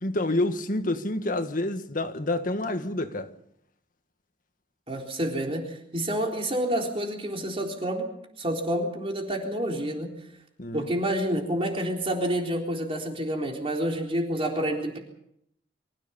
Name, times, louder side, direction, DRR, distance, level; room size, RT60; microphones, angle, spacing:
voice 1, 0.0-3.3 10.6-10.9, left 2 dB, 50° left, 1.7 m, -28 dB
voice 2, 4.9-8.1 8.4-10.1 10.7-15.0, right 1 dB, 35° right, 3.9 m, -28 dB
25.0 x 15.5 x 7.1 m
head